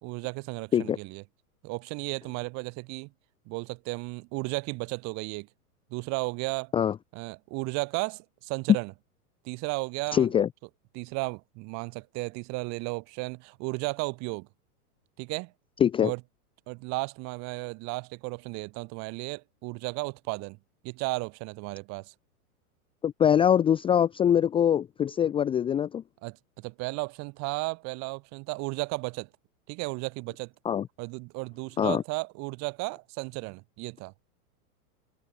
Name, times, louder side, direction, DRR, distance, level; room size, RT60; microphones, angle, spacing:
voice 1, 0.0-1.2 1.6-3.1 3.5-5.5 5.9-6.7 7.1-8.9 9.4-10.3 10.9-14.5 15.2-15.5 16.0-16.2 16.7-20.6 20.8-22.1 26.2-29.3 29.7-30.5 31.0-34.1, right 28 dB, 35° right, 2.8 m, -34 dB
voice 2, 10.1-10.5 15.8-16.1 23.0-26.0 30.6-30.8 31.8-32.0, left 9 dB, 10° left, 0.7 m, -23 dB
hypercardioid pair, 140°, 45 cm